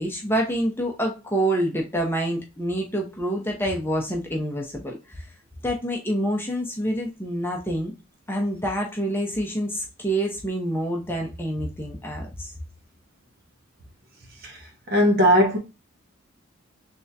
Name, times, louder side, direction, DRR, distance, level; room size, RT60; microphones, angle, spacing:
voice 1, 0.0-5.2 5.6-7.9 8.3-12.5, right 1 dB, 10° left, 0.7 m, -27 dB
voice 2, 14.9-15.6, equal, 45° right, 1.1 m, -18 dB
3.5 x 3.3 x 2.7 m
head